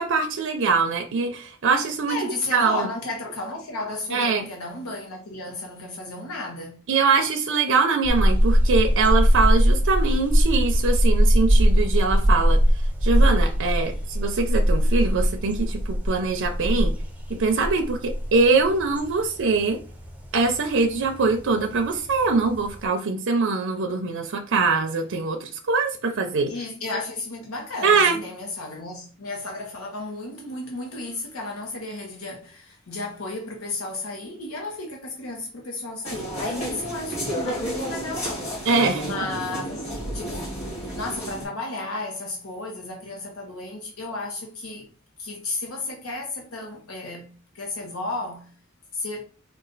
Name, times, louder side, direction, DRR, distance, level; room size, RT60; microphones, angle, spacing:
voice 1, 0.0-2.2 2.5-2.9 4.1-4.5 6.9-12.6 13.0-16.9 17.3-19.8 20.3-26.5 27.8-28.2 38.7-39.1, right 4 dB, 60° right, 0.5 m, -23 dB
voice 2, 2.1-6.9 26.5-38.7 38.9-40.6 40.9-44.9 45.2-48.5 48.9-49.2, left 2 dB, 85° left, 0.9 m, -33 dB
sound 1, 8.0-22.8, equal, 5° right, 0.5 m, -21 dB
sound 2, 36.0-41.4, equal, 30° left, 2.1 m, -31 dB
4.0 x 2.4 x 3.9 m
head